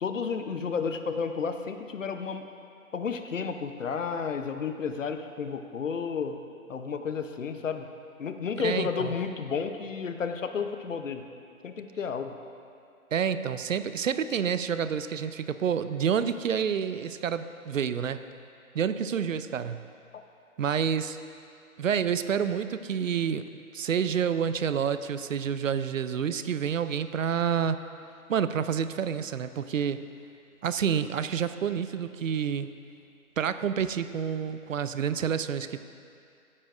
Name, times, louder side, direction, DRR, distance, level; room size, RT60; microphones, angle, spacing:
voice 1, 0.0-2.5 2.9-6.4 6.7-7.9 8.2-11.2 11.6-12.4 20.1-20.2, left 6 dB, 60° left, 7 dB, 0.8 m, -32 dB
voice 2, 8.6-9.1 13.1-18.2 18.7-19.9 20.6-21.2 21.8-23.5 23.7-27.8 28.3-30.0 30.6-32.7 33.4-35.8, right 7 dB, 65° right, 12 dB, 0.5 m, -28 dB
14.0 x 9.8 x 2.5 m, 2.5 s
figure-of-eight pair, 155°, 43 cm